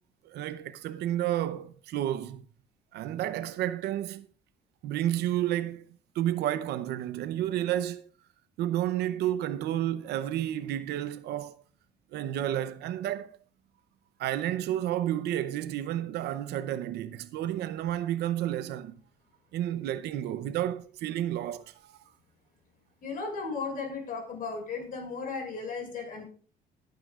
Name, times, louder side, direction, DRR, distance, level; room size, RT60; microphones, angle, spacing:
voice 1, 0.2-2.4 2.9-4.3 4.8-8.1 8.6-11.6 12.1-13.3 14.2-19.0 19.5-22.0, right 12 dB, 75° right, 0.7 m, -31 dB
voice 2, 23.0-26.2, left 4 dB, 55° left, 5.9 m, -35 dB
18.0 x 9.3 x 2.4 m
cardioid pair, 110°, 17 cm